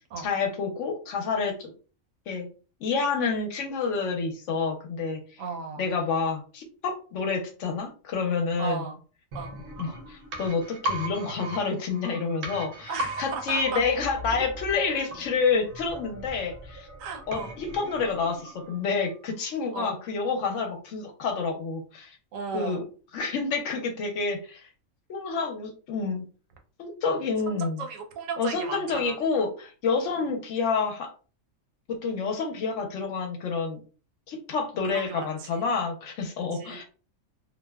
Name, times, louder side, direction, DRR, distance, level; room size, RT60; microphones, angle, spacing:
voice 1, 0.2-1.7 2.3-2.5 2.8-5.4 5.8-8.8 9.8-12.9 13.2-16.9 17.3-22.2 22.5-22.8 23.1-24.7 25.1-26.2 26.8-27.8 28.4-31.1 31.9-33.8 34.3-36.8, left 4 dB, 70° left, 3 dB, 0.9 m, -28 dB
voice 2, 5.4-5.9 8.6-9.0 9.3-9.6 12.9-13.8 17.0-17.6 19.7-20.0 22.3-22.9 27.5-29.2 30.1-30.2 34.9-35.6 36.5-36.8, right 5 dB, 75° right, 3 dB, 1.0 m, -36 dB
sound 1, 9.3-19.0 19.3-19.4, right 1 dB, 55° right, 0.7 m, -38 dB
2.7 x 2.0 x 2.2 m, 0.37 s
omnidirectional pair, 1.4 m